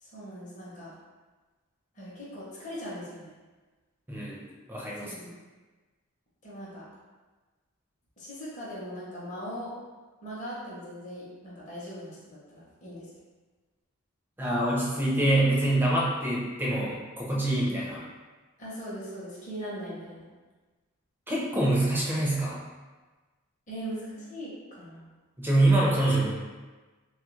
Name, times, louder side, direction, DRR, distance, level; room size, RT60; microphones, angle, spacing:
voice 1, 0.0-0.9 1.9-3.3 5.0-5.3 6.4-6.9 8.2-9.7 10.2-13.1 18.6-20.3 23.7-25.1, equal, 35° left, -8 dB, 0.8 m, -40 dB
voice 2, 4.1-4.4 4.7-5.1 14.4-18.0 21.3-22.6 25.4-26.3, right 1 dB, 10° right, -5 dB, 0.5 m, -25 dB
3.1 x 2.4 x 3.1 m, 1.3 s
head